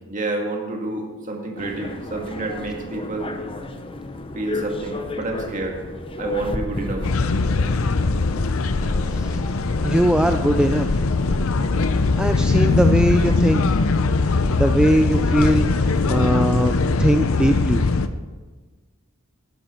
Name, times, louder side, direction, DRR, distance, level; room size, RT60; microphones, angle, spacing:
voice 1, 0.1-3.3 4.3-5.8 6.2-7.1, right 2 dB, 35° right, 1 dB, 1.9 m, -29 dB
sound 1, 1.6-16.4, left 2 dB, 25° left, 0.8 m, -34 dB
sound 2, 7.0-18.1, left 3 dB, 75° left, 0.6 m, -21 dB
voice 2, 9.8-10.9 12.2-13.6 14.6-17.9, right 1 dB, 5° right, 6 dB, 0.3 m, -20 dB
12.0 x 11.5 x 4.4 m, 1.3 s
head